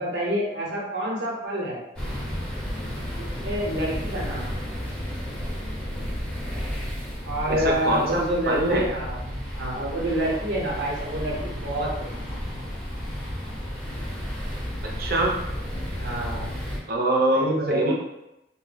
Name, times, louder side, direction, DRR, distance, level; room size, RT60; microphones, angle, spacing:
voice 1, 0.0-1.8 3.2-4.6 7.2-12.2 16.0-16.6 17.3-17.9, right 1 dB, 80° right, -3 dB, 0.9 m, -28 dB
sound 1, 2.0-16.8, equal, 5° left, 0.6 m, -32 dB
voice 2, 7.5-8.9 14.8-15.4 16.9-17.9, right 1 dB, 55° right, 0 dB, 0.6 m, -24 dB
2.2 x 2.1 x 3.8 m, 0.89 s
head